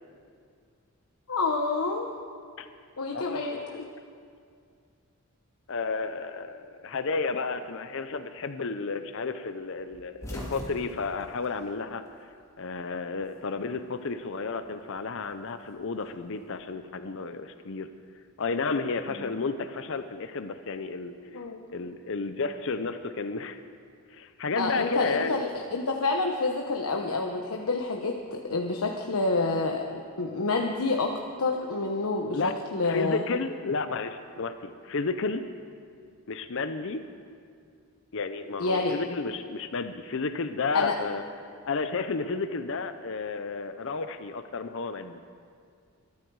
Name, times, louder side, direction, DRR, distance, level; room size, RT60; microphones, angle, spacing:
voice 1, 1.3-2.1 3.0-3.8 19.1-19.2 21.3-21.6 24.5-29.9 30.2-33.2 38.6-39.0 40.7-40.9, left 3 dB, 80° left, 2 dB, 1.1 m, -28 dB
voice 2, 3.1-3.8 5.7-12.3 12.6-17.9 18.4-21.1 21.7-23.6 24.1-25.4 32.3-32.5 32.8-35.4 36.3-37.1 38.1-41.2 41.7-45.2, left 4 dB, 60° left, 10 dB, 0.7 m, -32 dB
sound 1, 9.9-12.4 12.7-13.8 15.0-16.4, equal, 15° left, 2.5 m, -42 dB
22.0 x 13.0 x 4.8 m, 2.3 s
head